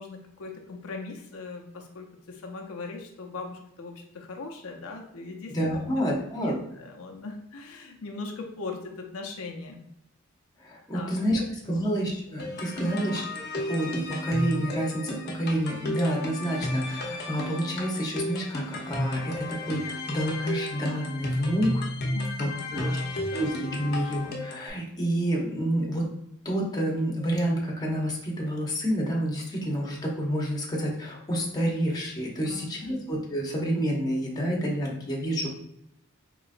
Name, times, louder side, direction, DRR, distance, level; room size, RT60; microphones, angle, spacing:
voice 1, 0.0-5.9 6.4-9.8 10.9-11.9 12.7-13.0 22.1-23.5 32.5-33.0, left 3 dB, 90° left, 2 dB, 0.6 m, -40 dB
voice 2, 5.5-6.6 10.6-21.8 22.4-22.9 23.3-26.1 26.4-35.5, equal, 20° left, -2 dB, 0.8 m, -29 dB
sound 1, 12.4-24.7, left 1 dB, 50° left, 0.7 m, -33 dB
3.9 x 3.0 x 2.5 m, 0.79 s
head